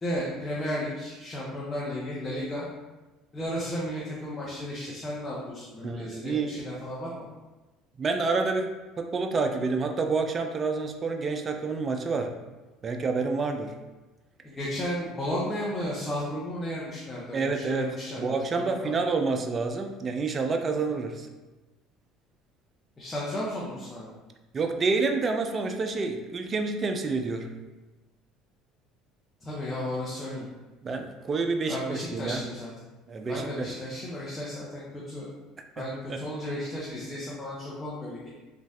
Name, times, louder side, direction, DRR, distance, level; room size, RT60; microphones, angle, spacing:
voice 1, 0.0-2.7 3.3-7.3 14.4-18.2 18.5-18.9 20.8-20.9 23.0-24.1 29.4-30.5 31.7-32.7 33.3-35.3 35.8-38.3, left 1 dB, 25° left, -6 dB, 0.7 m, -34 dB
voice 2, 5.8-6.6 8.0-8.7 9.0-12.4 12.8-13.8 17.3-21.3 24.5-27.5 30.8-32.4 33.1-33.7 35.8-36.2, right 4 dB, 35° right, 5 dB, 0.3 m, -28 dB
3.1 x 2.3 x 2.7 m, 1.1 s
hypercardioid pair, 75°, 0 cm